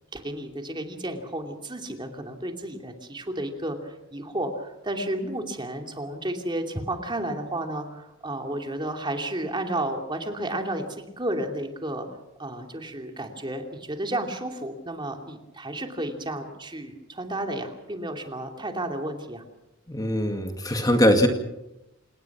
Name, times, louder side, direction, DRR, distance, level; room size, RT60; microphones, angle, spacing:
voice 1, 0.1-12.1 12.4-19.4, right 1 dB, 25° right, 4 dB, 2.8 m, -32 dB
voice 2, 19.9-21.3, equal, 20° left, 5 dB, 2.1 m, -21 dB
28.0 x 19.0 x 6.1 m, 0.93 s
head